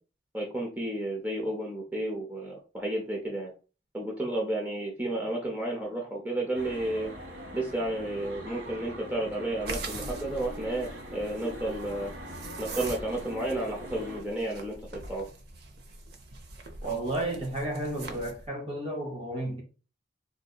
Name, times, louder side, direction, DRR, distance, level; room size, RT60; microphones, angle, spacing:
voice 1, 0.3-3.5 3.9-7.1 7.5-12.1 12.6-15.3, right 1 dB, 10° right, 0.6 m, -32 dB
sound 1, 6.5-14.2, equal, 85° right, 1.3 m, -42 dB
sound 2, 9.6-18.5, right 3 dB, 60° right, 0.6 m, -43 dB
voice 2, 16.8-19.6, right 1 dB, 35° right, 0.8 m, -32 dB
3.9 x 2.7 x 2.3 m
head